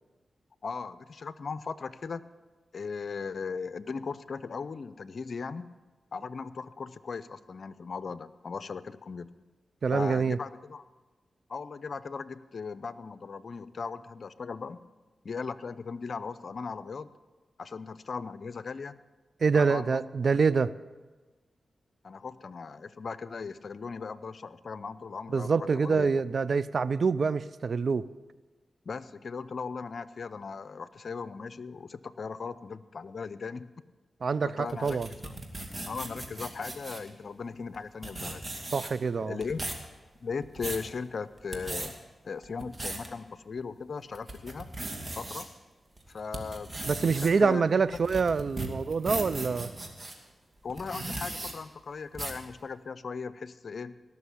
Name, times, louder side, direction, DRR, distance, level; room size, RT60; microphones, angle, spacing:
voice 1, 0.6-2.2 2.7-5.7 6.1-9.3 9.9-10.8 11.5-14.8 15.2-17.1 17.6-19.0 19.5-20.0 22.0-26.1 28.9-33.7 34.4-35.4 35.9-38.4 39.2-39.6 40.2-41.9 42.2-44.7 45.1-45.5 46.1-46.7 47.2-47.6 50.6-53.9, left 5 dB, 65° left, 15 dB, 0.6 m, -38 dB
voice 2, 9.8-10.4 19.4-20.7 25.3-28.1 34.2-35.1 38.7-39.4 46.9-49.7, right 5 dB, 65° right, 17 dB, 0.5 m, -26 dB
sound 1, 34.7-37.1 37.7-37.8 38.0-39.1 39.4-39.8 40.3-40.9 41.4-41.9 42.4-43.1 43.6-43.7 44.1-45.4 46.0-50.1 50.7-51.5 52.1-52.4, right 2 dB, 35° right, 2.5 m, -37 dB
18.0 x 6.6 x 8.5 m, 1.3 s
cardioid pair, 45°, 0 cm